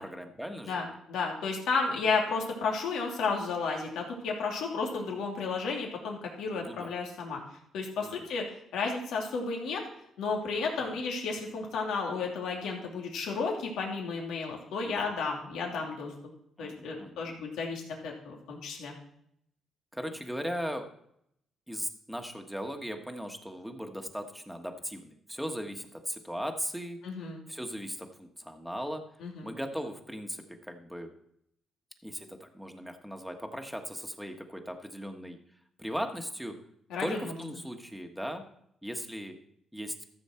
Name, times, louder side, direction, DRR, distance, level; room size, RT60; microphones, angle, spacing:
voice 1, 0.0-0.8 6.5-6.9 8.0-8.2 10.8-11.0 14.8-15.1 16.6-17.3 19.9-20.9 21.7-27.0 27.5-29.0 29.4-31.1 32.0-35.4 35.8-36.5 37.0-38.4 38.8-39.4 39.7-39.9, equal, ahead, 4 dB, 1.5 m, -38 dB
voice 2, 0.6-7.4 7.7-8.5 8.7-9.8 10.2-16.1 16.6-18.9 27.0-27.4 29.2-29.5 36.9-37.3, left 4 dB, 80° left, 0 dB, 2.6 m, -32 dB
14.0 x 7.1 x 4.4 m, 0.72 s
cardioid pair, 90°, 0 cm